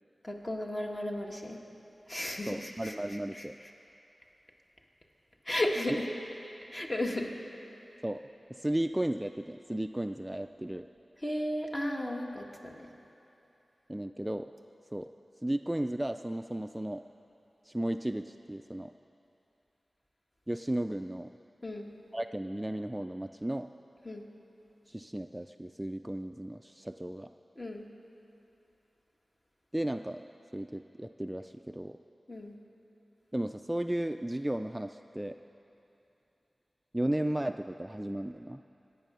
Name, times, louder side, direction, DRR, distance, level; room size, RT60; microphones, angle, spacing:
voice 1, 0.2-1.6 2.1-3.5 5.5-6.1 6.7-7.3 11.2-12.9 21.6-21.9 24.1-24.2 27.6-27.9 32.3-32.6, left 1 dB, 30° left, 0 dB, 1.7 m, -34 dB
voice 2, 2.5-3.6 5.9-6.0 8.0-8.2 8.5-10.9 13.9-14.5 14.9-15.1 15.4-17.0 17.6-18.9 20.5-21.3 22.1-23.7 24.9-27.3 29.7-30.2 30.5-32.0 33.3-35.4 36.9-38.6, right 1 dB, 10° right, 7 dB, 0.3 m, -34 dB
23.5 x 9.0 x 6.7 m, 3.0 s
wide cardioid pair, 80°, 0 cm